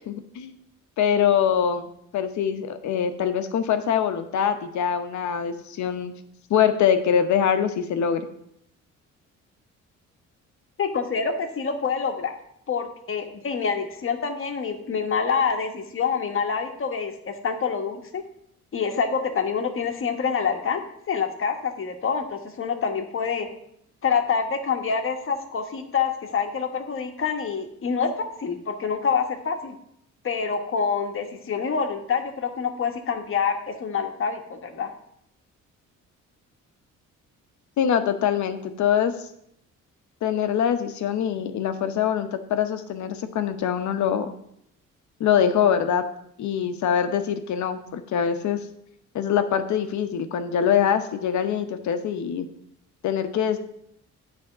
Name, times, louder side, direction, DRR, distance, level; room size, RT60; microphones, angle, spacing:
voice 1, 0.1-0.5 1.0-6.1 6.5-8.2 37.8-39.1 40.2-44.3 45.2-46.0 46.4-48.6 49.1-52.5 53.0-53.6, left 8 dB, 70° left, 8 dB, 0.9 m, -23 dB
voice 2, 10.8-12.4 12.7-18.2 18.7-23.5 24.0-29.8 30.2-34.9, left 6 dB, 45° left, 5 dB, 1.2 m, -26 dB
8.6 x 3.6 x 6.5 m, 0.73 s
cardioid pair, 90°, 30 cm